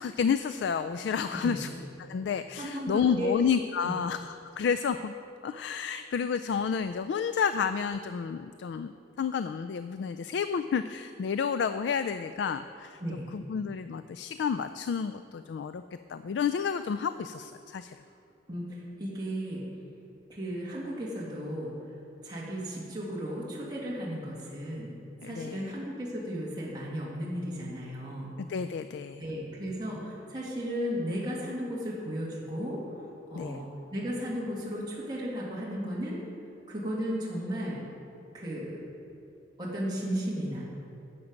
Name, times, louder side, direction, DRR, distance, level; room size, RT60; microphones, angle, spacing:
voice 1, 0.0-1.7 2.0-5.1 5.4-13.0 13.5-15.8 16.1-18.0 25.2-25.7 28.4-29.2 33.3-33.6, left 6 dB, 70° left, 11 dB, 0.3 m, -30 dB
voice 2, 2.6-3.3 3.8-3.9 13.0-13.3 18.5-19.6 20.3-21.7 22.2-24.9 25.2-28.3 29.2-33.0 33.3-36.2 36.7-37.8 38.3-38.8 39.6-40.6, equal, 25° right, -6 dB, 2.0 m, -35 dB
12.0 x 7.6 x 5.2 m, 2.7 s
head